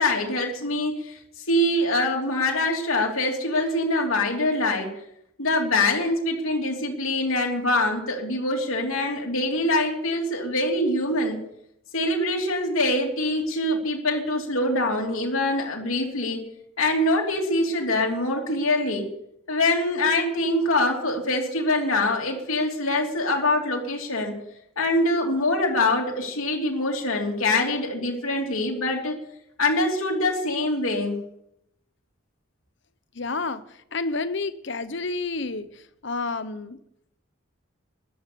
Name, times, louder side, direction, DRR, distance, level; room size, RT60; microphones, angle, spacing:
voice 1, 0.0-4.9 5.4-11.4 11.9-16.4 16.8-19.1 19.5-24.3 24.8-29.1 29.6-31.2, left 2 dB, 75° left, 0 dB, 3.1 m, -24 dB
voice 2, 33.2-33.6 33.9-35.7 36.0-36.8, left 3 dB, 55° left, 13 dB, 0.9 m, -29 dB
14.5 x 12.0 x 7.0 m, 0.76 s
head